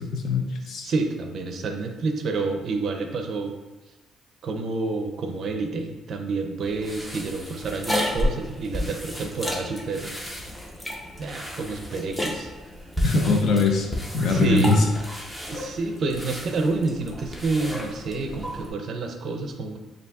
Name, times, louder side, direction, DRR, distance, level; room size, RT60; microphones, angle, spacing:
voice 1, 0.0-0.9 13.0-13.9 14.1-14.8, left 3 dB, 60° left, 2 dB, 0.6 m, -22 dB
voice 2, 0.8-3.5 4.4-10.1 11.2-12.5 14.2-14.9 15.5-19.8, right 3 dB, 50° right, 5 dB, 0.4 m, -28 dB
sound 1, 6.6-18.7, left 1 dB, 5° left, 0.6 m, -32 dB
6.8 x 2.6 x 2.3 m, 1.2 s
cardioid pair, 145°, 0 cm